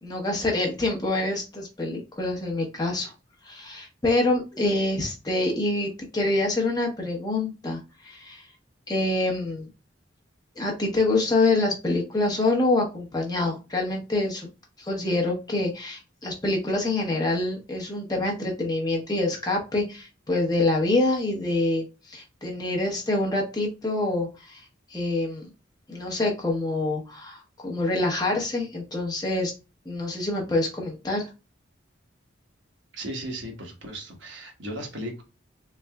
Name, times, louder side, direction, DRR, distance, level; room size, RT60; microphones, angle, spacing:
voice 1, 0.0-3.1 3.4-8.5 8.9-9.7 10.6-14.5 14.8-24.6 24.9-25.5 25.9-29.5 29.8-31.3, left 2 dB, 20° left, -1 dB, 0.9 m, -26 dB
voice 2, 32.9-35.2, right 1 dB, 70° right, 2 dB, 1.2 m, -36 dB
3.8 x 3.3 x 2.3 m, 0.29 s
head